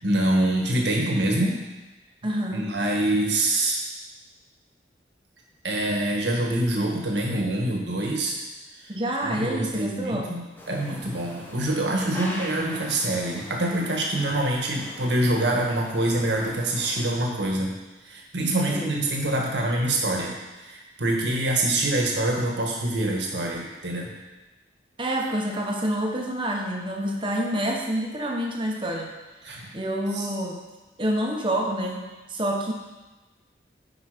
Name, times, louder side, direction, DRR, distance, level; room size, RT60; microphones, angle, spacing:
voice 1, 0.0-1.6 2.5-3.8 5.6-8.4 9.2-17.7 18.0-20.4 20.6-24.1 29.4-29.7 30.1-30.3, right 1 dB, 75° right, -1 dB, 1.7 m, -25 dB
voice 2, 2.2-2.7 8.9-10.3 12.1-12.3 18.7-18.9 25.0-29.1 29.5-30.6 31.0-32.7, right 1 dB, 25° right, 0 dB, 1.1 m, -28 dB
sound 1, 10.6-17.1, equal, 10° left, 1.0 m, -42 dB
9.6 x 5.0 x 5.1 m, 1.1 s
head